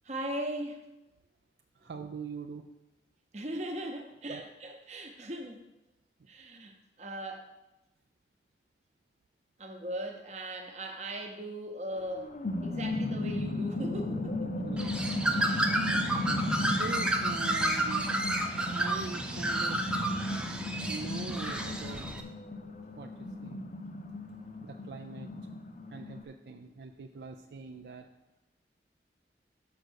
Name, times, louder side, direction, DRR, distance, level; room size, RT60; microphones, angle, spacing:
voice 1, 0.0-0.8 3.3-5.6 6.3-7.5 9.6-12.3 12.6-14.7 15.3-15.4 24.2-24.3, right 1 dB, 40° right, 4 dB, 0.9 m, -39 dB
voice 2, 1.8-2.7 4.3-4.4 14.6-15.8 16.8-18.1 18.7-19.8 20.9-22.1 23.0-23.6 24.6-25.3 25.9-28.1, right 4 dB, 65° right, 4 dB, 0.4 m, -43 dB
sound 1, 12.0-26.2, left 1 dB, 40° left, 0.5 m, -36 dB
Bird, 14.8-22.2, right 1 dB, 5° right, 0.5 m, -31 dB
6.6 x 5.0 x 6.4 m, 0.98 s
head